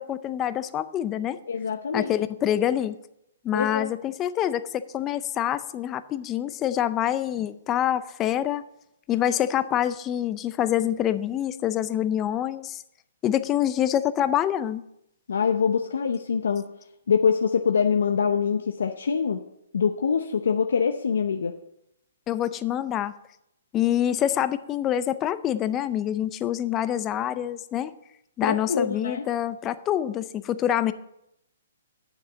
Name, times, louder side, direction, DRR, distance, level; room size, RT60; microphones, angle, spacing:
voice 1, 0.0-1.4 1.9-3.0 3.4-8.6 9.1-12.8 13.2-14.8 22.3-23.1 23.7-27.9 28.4-30.9, left 11 dB, 20° left, 13 dB, 0.5 m, -26 dB
voice 2, 1.5-2.1 3.5-3.9 15.3-16.7 17.1-19.4 19.7-21.6 28.4-29.3, left 6 dB, 80° left, 5 dB, 0.7 m, -24 dB
8.4 x 6.7 x 7.4 m, 0.80 s
hypercardioid pair, 155°, 0 cm